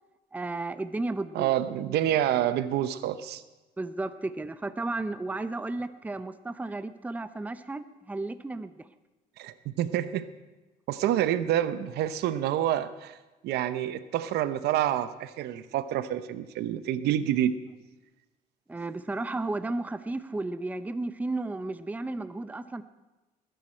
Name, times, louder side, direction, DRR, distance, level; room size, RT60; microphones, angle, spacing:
voice 1, 0.3-1.5 3.8-8.9 18.7-22.8, right 2 dB, 10° right, 12 dB, 0.6 m, -33 dB
voice 2, 1.3-3.4 9.4-10.3 10.9-13.2 13.4-17.5, right 11 dB, 75° right, 13 dB, 0.7 m, -28 dB
19.5 x 10.0 x 4.4 m, 1.1 s
cardioid pair, 110°, 17 cm